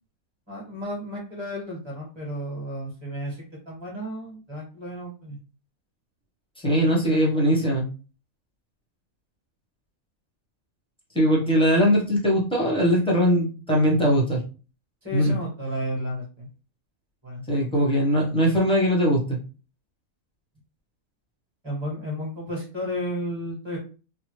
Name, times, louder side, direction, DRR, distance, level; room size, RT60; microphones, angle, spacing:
voice 1, 0.5-3.4 3.6-5.4 7.1-7.2 7.5-7.6 15.0-16.5 17.2-17.4 21.6-23.8, equal, 20° right, -4 dB, 1.4 m, -33 dB
voice 2, 6.6-7.9 11.1-14.4 15.1-15.3 17.5-19.4, equal, 5° left, -4 dB, 0.8 m, -21 dB
3.1 x 2.2 x 3.2 m, 0.35 s
omnidirectional pair, 1.5 m